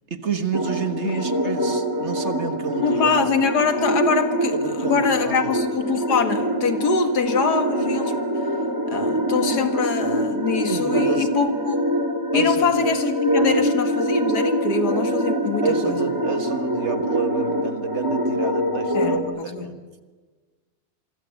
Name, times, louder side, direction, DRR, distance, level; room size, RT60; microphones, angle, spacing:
voice 1, 0.1-3.2 4.5-5.5 10.7-11.3 12.3-12.6 13.4-13.5 15.6-20.0, right 6 dB, 45° right, 9 dB, 1.7 m, -29 dB
sound 1, 0.5-19.2, right 1 dB, 10° right, 2.5 m, -24 dB
voice 2, 2.8-8.2 8.9-11.8 12.3-16.0 18.9-19.7, left 5 dB, 80° left, 9 dB, 2.2 m, -24 dB
27.5 x 23.5 x 8.3 m, 1.4 s
omnidirectional pair, 1.7 m